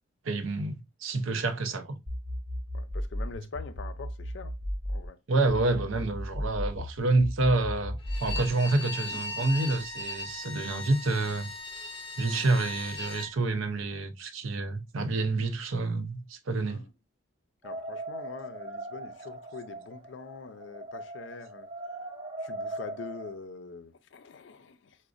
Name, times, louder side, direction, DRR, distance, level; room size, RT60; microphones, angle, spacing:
voice 1, 0.2-2.0 5.3-11.5 12.2-16.8, right 2 dB, 85° right, 0.6 m, -28 dB
sound 1, 2.1-5.1 5.5-8.5, equal, 55° right, 1.0 m, -35 dB
voice 2, 2.7-4.6 4.9-5.2 12.3-12.5 16.6-16.9 17.6-21.7 22.4-25.0, left 4 dB, 65° left, 0.4 m, -44 dB
Bowed string instrument, 8.0-13.3, left 2 dB, 25° left, 0.7 m, -38 dB
sound 2, 17.6-23.3, right 2 dB, 25° right, 0.6 m, -40 dB
4.9 x 2.1 x 2.4 m
head